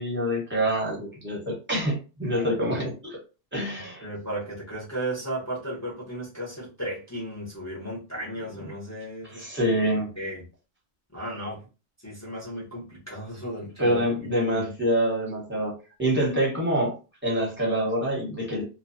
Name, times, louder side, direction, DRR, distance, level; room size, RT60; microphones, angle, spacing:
voice 1, 0.0-3.2 3.5-4.1 9.3-10.1 13.8-16.9 17.2-18.6, equal, 10° right, -3 dB, 0.9 m, -26 dB
voice 2, 2.3-2.8 4.0-9.7 10.2-10.4 11.1-11.6 12.0-14.7, right 1 dB, 15° left, -6 dB, 0.7 m, -35 dB
2.4 x 2.2 x 2.5 m, 0.33 s
omnidirectional pair, 1.2 m